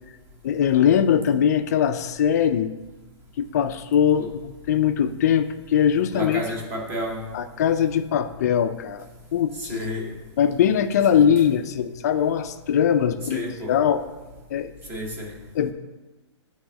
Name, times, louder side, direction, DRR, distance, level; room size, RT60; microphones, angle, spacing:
voice 1, 0.4-2.7 3.4-6.4 7.3-9.0 9.3-9.9 10.4-14.0 14.5-14.7 15.5-15.7, left 8 dB, 35° left, 10 dB, 0.4 m, -21 dB
voice 2, 6.1-7.2 9.6-10.1 11.1-11.3 13.3-13.8 14.9-15.4, equal, 15° right, 1 dB, 1.0 m, -31 dB
8.5 x 3.5 x 6.0 m, 1.2 s
hypercardioid pair, 165°, 15 cm